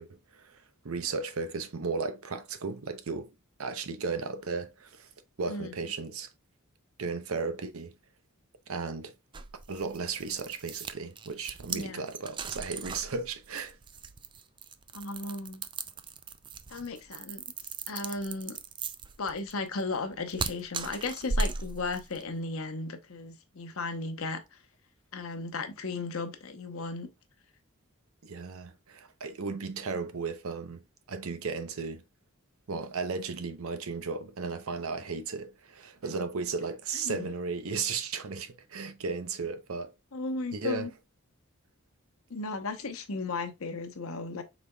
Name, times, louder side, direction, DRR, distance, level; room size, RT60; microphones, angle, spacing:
voice 1, 0.0-3.3 3.6-5.1 5.4-6.3 7.0-7.9 8.7-9.1 9.7-13.8 28.2-32.0 32.7-39.9 40.5-40.9, right 4 dB, 90° right, 0.7 m, -35 dB
sound 1, 9.3-22.3, right 4 dB, 25° right, 0.3 m, -37 dB
voice 2, 11.7-12.0 14.9-15.7 16.7-17.4 17.9-18.6 19.2-24.4 25.1-27.1 37.0-37.3 40.1-40.9 42.3-44.4, left 3 dB, 80° left, 0.9 m, -35 dB
5.1 x 4.0 x 2.2 m
head